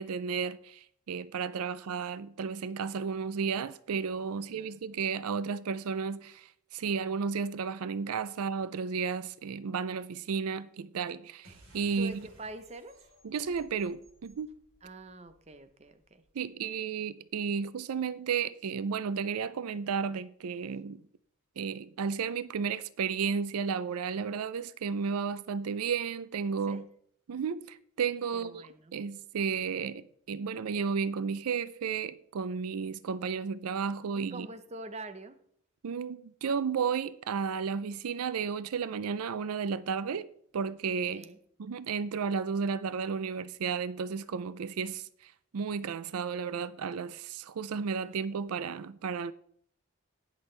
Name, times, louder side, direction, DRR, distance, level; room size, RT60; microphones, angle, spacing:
voice 1, 0.0-12.3 13.2-14.6 16.3-21.0 21.6-26.8 27.3-34.5 35.8-40.3 40.5-41.2 41.6-49.3, right 6 dB, 90° right, 0.4 m, -33 dB
voice 2, 4.4-4.8 12.0-13.0 14.8-16.2 26.7-26.8 28.3-28.9 34.3-35.4 41.1-41.4, right 2 dB, 30° right, 0.7 m, -45 dB
sound 1, 11.4-16.4, right 1 dB, 70° right, 3.5 m, -59 dB
18.5 x 6.3 x 3.3 m
head